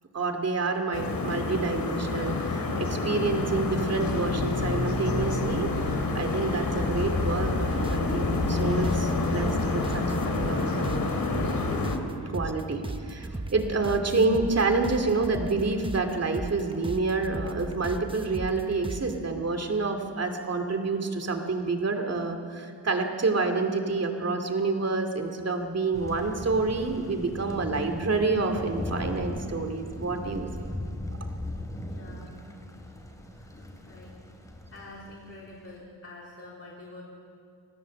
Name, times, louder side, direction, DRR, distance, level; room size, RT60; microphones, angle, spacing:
voice 1, 0.1-11.8 12.3-30.5, right 3 dB, 40° right, 5 dB, 2.5 m, -28 dB
sound 1, 0.9-12.0, left 3 dB, 55° left, 3.1 m, -28 dB
sound 2, 7.6-19.2, right 2 dB, 15° right, 1.0 m, -37 dB
Thunder, 25.9-35.7, left 1 dB, 10° left, 2.8 m, -38 dB
voice 2, 31.8-32.3 33.4-34.2 34.7-37.0, left 2 dB, 35° left, -5 dB, 3.8 m, -46 dB
27.0 x 19.0 x 7.7 m, 2.3 s
wide cardioid pair, 155°, 41 cm